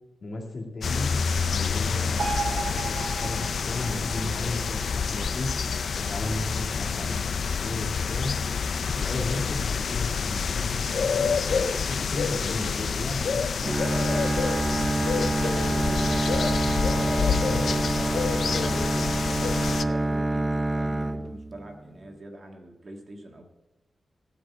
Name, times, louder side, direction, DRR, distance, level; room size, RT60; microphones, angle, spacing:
voice 1, 0.2-1.1 1.5-3.4 3.7-5.5 6.0-8.3 8.9-11.3 11.9-13.8 17.3-17.7, left 2 dB, 50° left, 0 dB, 2.3 m, -34 dB
sound 1, 0.8-19.8, left 6 dB, 65° left, 0.5 m, -28 dB
sound 2, 2.2-9.1 9.5-9.6, right 5 dB, 75° right, 1.6 m, -38 dB
Bowed string instrument, 13.6-21.8, right 1 dB, 20° right, 0.5 m, -27 dB
voice 2, 14.8-23.5, right 1 dB, 40° right, 2 dB, 1.6 m, -43 dB
14.5 x 5.1 x 8.3 m, 1.0 s
wide cardioid pair, 155°, 0 cm